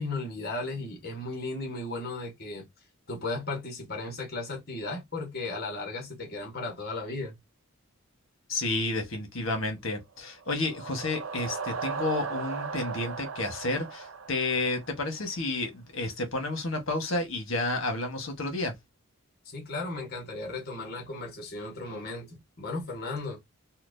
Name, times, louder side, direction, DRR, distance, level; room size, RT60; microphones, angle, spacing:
voice 1, 0.0-2.7 3.1-7.4 19.4-23.4, left 2 dB, 45° left, 1.3 m, -35 dB
voice 2, 8.5-18.7, left 2 dB, 65° left, 1.3 m, -31 dB
sound 1, 10.3-15.2, right 5 dB, 70° right, 0.5 m, -37 dB
4.3 x 2.3 x 2.6 m
head